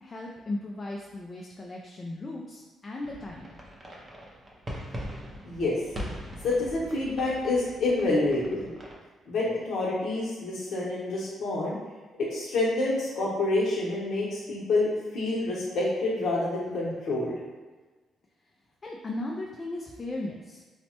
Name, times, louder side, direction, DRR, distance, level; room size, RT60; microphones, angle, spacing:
voice 1, 0.0-3.6 18.8-20.6, left 2 dB, 30° left, -1 dB, 0.3 m, -36 dB
sound 1, 3.0-9.0, equal, 25° right, 0.5 m, -41 dB
voice 2, 5.4-5.8 6.4-8.7 9.3-11.8 12.3-17.3, left 2 dB, 65° left, -7 dB, 0.8 m, -27 dB
3.1 x 2.1 x 2.8 m, 1.3 s
cardioid pair, 90°, 0 cm